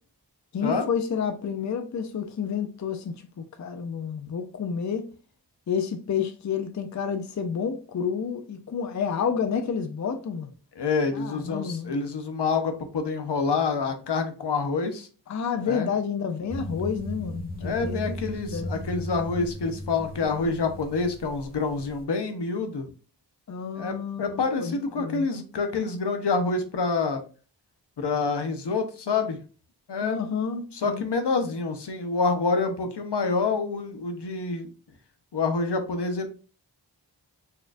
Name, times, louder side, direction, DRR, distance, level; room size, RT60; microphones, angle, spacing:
voice 1, 0.5-5.0 5.7-10.5 11.1-11.9 15.3-18.7 23.5-25.3 30.0-31.0, left 6 dB, 45° left, 0.5 m, -30 dB
voice 2, 10.8-15.1 15.7-15.9 17.6-22.9 23.7-27.2 28.0-29.4 29.9-30.2 30.7-34.7 35.3-36.3, left 4 dB, 75° left, 0.7 m, -27 dB
sound 1, 16.5-22.0, equal, 20° right, 1.2 m, -36 dB
4.3 x 2.3 x 2.5 m
wide cardioid pair, 45°, 42 cm